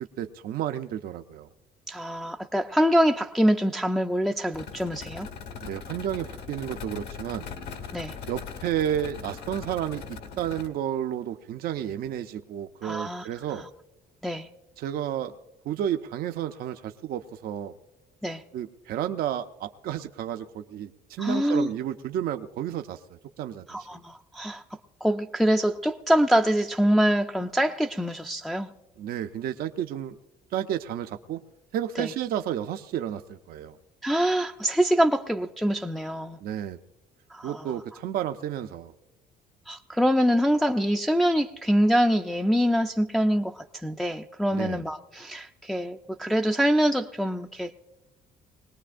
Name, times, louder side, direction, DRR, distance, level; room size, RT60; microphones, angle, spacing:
voice 1, 0.2-1.5 5.6-7.5 8.3-13.7 14.8-15.3 15.6-17.8 18.5-23.9 29.0-30.2 30.5-31.4 31.7-33.8 36.4-36.8 37.4-38.9 44.5-44.8, right 10 dB, 60° right, 7 dB, 0.5 m, -31 dB
voice 2, 1.9-5.3 7.9-8.2 12.8-13.7 14.2-14.5 18.2-18.4 21.2-21.7 23.7-24.6 25.0-28.7 32.0-32.1 34.0-36.4 37.3-37.8 39.7-47.8, equal, ahead, 3 dB, 0.4 m, -25 dB
sound 1, 4.5-10.7, left 6 dB, 70° left, 1.5 m, -40 dB
21.5 x 18.5 x 2.5 m, 1.1 s
cardioid pair, 110°, 17 cm